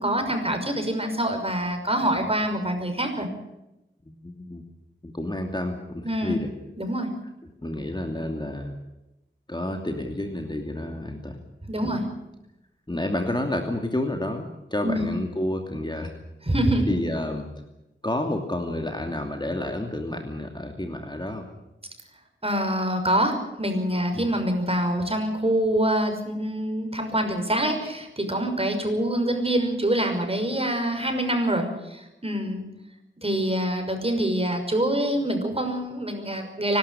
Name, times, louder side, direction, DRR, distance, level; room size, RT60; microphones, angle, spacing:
voice 1, 0.0-3.3 6.0-6.4 6.8-7.1 11.6-12.0 14.8-15.1 16.5-16.9 22.4-32.7 33.2-36.8, right 1 dB, 30° right, 5 dB, 5.9 m, -25 dB
voice 2, 4.0-4.6 5.0-6.5 7.6-8.7 9.5-11.4 11.8-11.9 12.9-16.1 16.9-17.5 18.0-21.4 24.1-24.3, left 1 dB, 20° left, 3 dB, 2.7 m, -30 dB
25.0 x 12.5 x 9.9 m, 0.93 s
wide cardioid pair, 50°, 20 cm